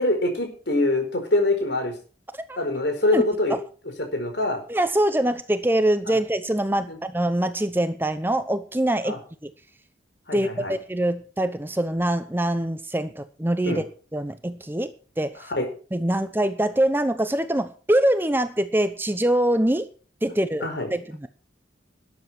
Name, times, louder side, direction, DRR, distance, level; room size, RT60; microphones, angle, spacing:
voice 1, 0.0-1.9 2.6-3.5 4.1-4.6 6.1-6.2 6.9-7.0 9.0-9.2 10.3-10.8 13.7-13.8 15.5-15.7 20.6-20.9, left 2 dB, 60° left, 4 dB, 4.6 m, -24 dB
voice 2, 4.7-9.5 10.3-13.8 14.1-14.9 15.2-15.5 15.9-19.9 20.2-21.0, right 1 dB, 10° right, 11 dB, 0.8 m, -24 dB
13.0 x 9.3 x 6.0 m, 0.39 s
head